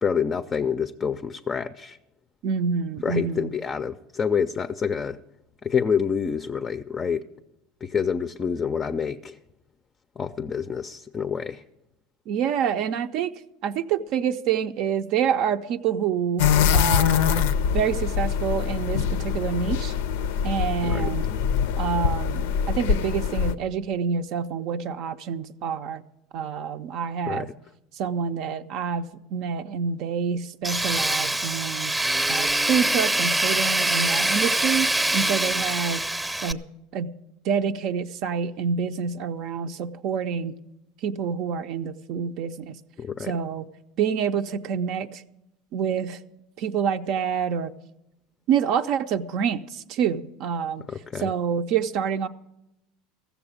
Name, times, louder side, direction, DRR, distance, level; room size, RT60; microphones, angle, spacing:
voice 1, 0.0-2.0 3.0-5.2 5.6-7.2 7.8-9.4 10.2-11.6 20.8-21.1 27.3-27.5 43.0-43.3 50.9-51.3, left 6 dB, 25° left, 0.4 m, -27 dB
voice 2, 2.4-3.5 12.3-13.3 13.6-17.4 17.7-19.9 20.4-21.3 21.8-26.0 26.3-27.5 27.9-31.9 32.3-36.0 36.4-36.6 36.9-37.1 37.4-40.5 41.0-42.7 43.2-43.7 44.0-45.2 45.7-46.2 46.6-47.7 48.5-50.9 51.2-52.3, right 7 dB, 60° right, 0.5 m, -27 dB
sound 1, 16.4-23.5, left 8 dB, 80° left, 0.5 m, -24 dB
Tools, 30.6-36.5, right 1 dB, 10° right, 0.7 m, -24 dB
14.5 x 7.0 x 8.5 m
supercardioid pair, 105°, 0 cm